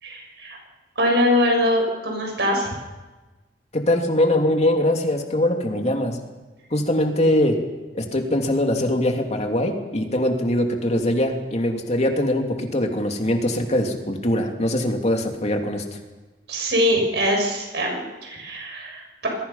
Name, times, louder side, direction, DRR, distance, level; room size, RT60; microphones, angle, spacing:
voice 1, 0.0-0.6 1.0-2.7 16.5-19.3, left 1 dB, 70° right, 1 dB, 6.6 m, -22 dB
voice 2, 3.7-6.2 6.7-7.6 7.9-15.8, left 1 dB, 40° left, 3 dB, 2.7 m, -22 dB
28.0 x 21.0 x 5.7 m, 1.2 s
head